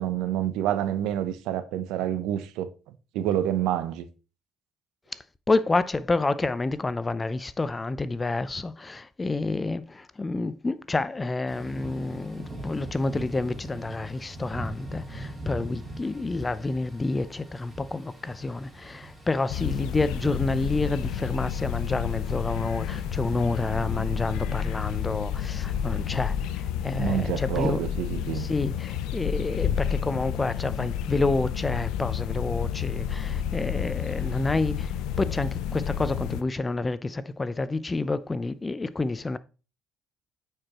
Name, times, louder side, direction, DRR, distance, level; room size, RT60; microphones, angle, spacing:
voice 1, 0.0-2.7 3.1-4.1 27.0-28.5, right 11 dB, 80° right, 0.7 m, -28 dB
voice 2, 5.5-27.8 28.3-39.4, left 3 dB, 25° left, 0.5 m, -29 dB
Thunder / Rain, 11.5-26.4, right 1 dB, 15° right, 3.1 m, -42 dB
sound 1, 19.5-36.4, left 9 dB, 80° left, 0.4 m, -30 dB
8.8 x 4.9 x 3.0 m
supercardioid pair, 75°, 0 cm